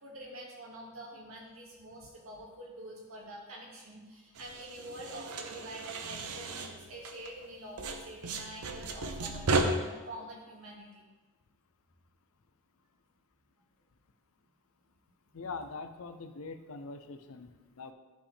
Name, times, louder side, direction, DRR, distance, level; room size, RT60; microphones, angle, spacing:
voice 1, 0.0-11.1, right 1 dB, 65° right, -3 dB, 2.1 m, -46 dB
sound 1, 4.3-7.5 7.8-9.6, right 3 dB, 80° right, 0.7 m, -35 dB
voice 2, 15.3-17.9, left 4 dB, 65° left, 10 dB, 0.5 m, -43 dB
11.5 x 5.0 x 3.4 m, 1.2 s
head